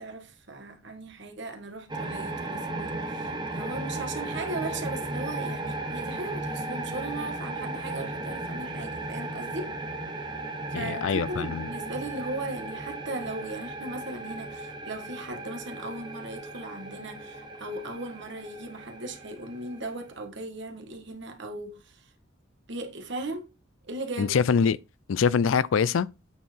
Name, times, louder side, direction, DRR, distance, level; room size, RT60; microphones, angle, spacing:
voice 1, 0.0-9.7 10.7-22.1 22.7-23.5 23.9-24.4, right 2 dB, 60° right, 1.6 m, -37 dB
sound 1, 1.9-20.2, right 2 dB, 20° right, 1.0 m, -36 dB
voice 2, 10.7-11.7 24.2-24.8 25.1-26.1, left 6 dB, 75° left, 0.4 m, -24 dB
8.5 x 4.6 x 4.5 m
head